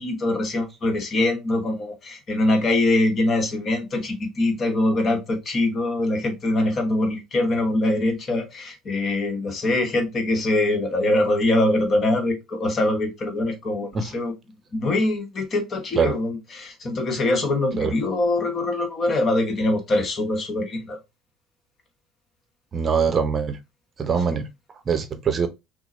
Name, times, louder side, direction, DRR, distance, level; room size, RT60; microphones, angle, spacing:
voice 1, 0.0-14.3 14.7-21.0 24.3-24.4, left 2 dB, 40° left, 1.3 m, -23 dB
voice 2, 22.7-23.6 24.0-24.5 24.9-25.5, right 6 dB, 35° right, 0.7 m, -22 dB
5.9 x 2.1 x 3.0 m
figure-of-eight pair, 60°, 0 cm